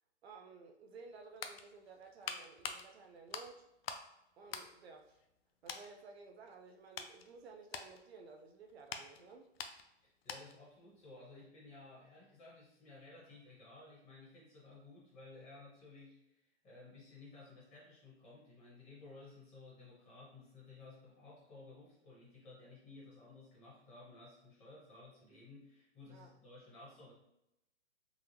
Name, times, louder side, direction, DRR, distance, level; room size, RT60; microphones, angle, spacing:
voice 1, 0.2-3.7 4.4-5.2 5.6-9.5 26.1-26.3, right 4 dB, 65° right, 3 dB, 0.6 m, -55 dB
sound 1, 1.0-4.1 4.4-5.4 5.7-5.9 6.5-10.7 11.0-11.2, left 6 dB, 60° left, 0.4 m, -47 dB
voice 2, 10.0-27.1, left 3 dB, 20° left, -6 dB, 1.2 m, -56 dB
3.7 x 2.0 x 2.8 m, 0.83 s
hypercardioid pair, 135°, 34 cm